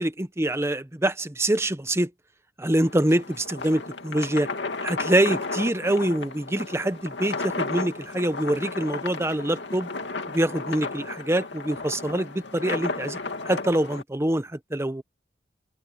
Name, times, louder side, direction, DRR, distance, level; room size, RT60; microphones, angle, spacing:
voice 1, 0.0-2.1 2.6-4.5 4.8-9.9 10.3-13.2 13.4-15.0, right 1 dB, 15° right, 0.9 m, -25 dB
sound 1, 2.8-14.0, left 3 dB, 70° left, 2.6 m, -34 dB
open air
head